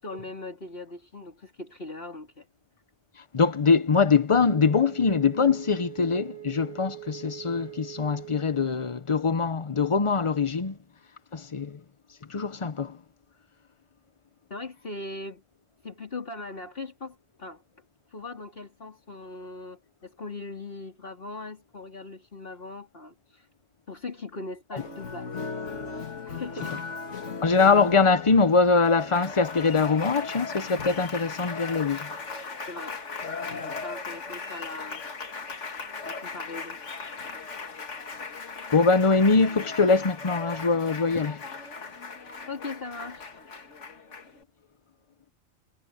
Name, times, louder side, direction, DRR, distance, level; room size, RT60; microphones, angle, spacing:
voice 1, 0.0-2.5 14.5-15.4 15.8-17.6 18.1-23.5 23.9-25.6 26.2-26.8 32.7-33.0 33.5-35.0 36.1-36.8 42.5-43.4, left 3 dB, 50° left, 3.8 m, -40 dB
voice 2, 3.3-10.8 11.3-11.8 12.3-13.0 24.7-24.8 27.4-32.1 38.7-41.4, left 4 dB, 30° left, 0.7 m, -23 dB
Wind instrument woodwind instrument, 4.4-8.5, right 17 dB, 50° right, 3.0 m, -43 dB
Applause, 24.8-44.4, left 4 dB, 70° left, 2.1 m, -37 dB
omnidirectional pair, 1.3 m